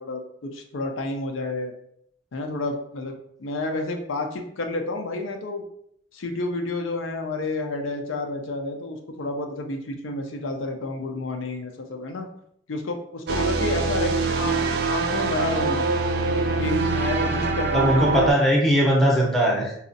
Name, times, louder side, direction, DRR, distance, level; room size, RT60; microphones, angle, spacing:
voice 1, 0.0-1.7 2.3-3.1 3.4-5.6 6.1-12.3 12.7-15.9 16.6-18.3, left 2 dB, 80° left, 4 dB, 0.5 m, -30 dB
sound 1, 13.3-18.3, right 3 dB, 55° right, 0.4 m, -24 dB
voice 2, 17.7-19.8, equal, ahead, -3 dB, 0.6 m, -20 dB
4.0 x 2.4 x 2.6 m, 0.70 s
head